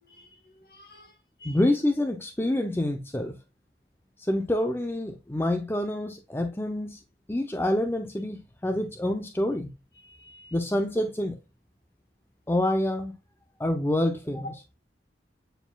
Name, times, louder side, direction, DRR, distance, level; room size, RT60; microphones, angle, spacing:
voice 1, 0.0-1.6 10.0-10.5 14.4-14.6, left 1 dB, 55° left, 1.4 m, -47 dB
voice 2, 1.4-3.4 4.2-7.0 7.3-9.7 10.5-11.4 12.5-13.1 13.6-14.5, left 1 dB, 15° left, 0.5 m, -27 dB
8.9 x 4.8 x 2.2 m
head